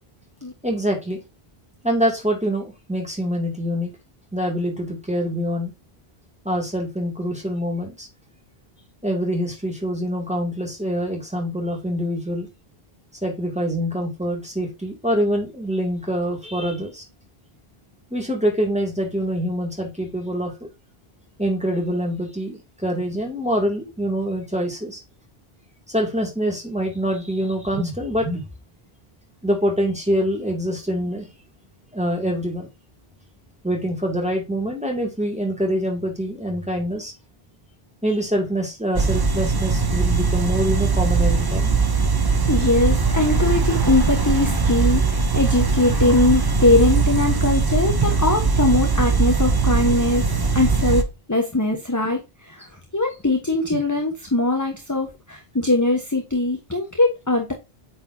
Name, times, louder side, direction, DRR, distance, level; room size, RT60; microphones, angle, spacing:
voice 1, 0.6-1.2 1.8-3.9 4.3-5.7 6.4-8.1 9.0-12.5 13.2-17.0 18.1-20.7 21.4-25.0 25.9-28.4 29.4-31.3 31.9-32.7 33.6-37.1 38.0-41.7 53.7-53.8, equal, 5° right, 1 dB, 2.4 m, -25 dB
sound 1, 39.0-51.0, right 4 dB, 25° right, 0.7 m, -20 dB
voice 2, 42.5-50.3 50.5-57.5, left 2 dB, 20° left, 3 dB, 1.2 m, -21 dB
8.8 x 4.5 x 2.7 m, 0.24 s
omnidirectional pair, 1.0 m